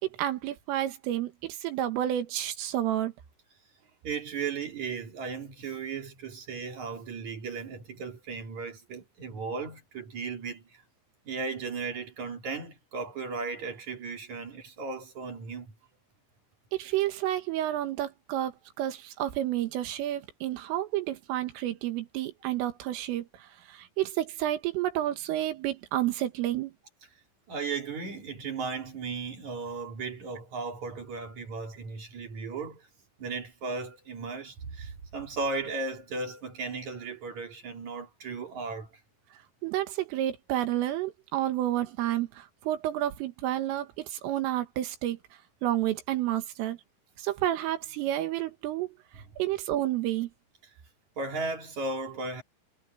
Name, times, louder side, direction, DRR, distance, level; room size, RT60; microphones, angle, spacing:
voice 1, 0.0-3.1 16.7-26.7 39.6-45.2 45.6-46.8 47.2-48.9 49.4-50.3, right 13 dB, 85° right, 4.3 m, -30 dB
voice 2, 4.0-10.6 11.2-15.7 27.5-32.9 33.2-38.9 51.2-52.4, right 4 dB, 45° right, 3.2 m, -36 dB
omnidirectional pair, 5.8 m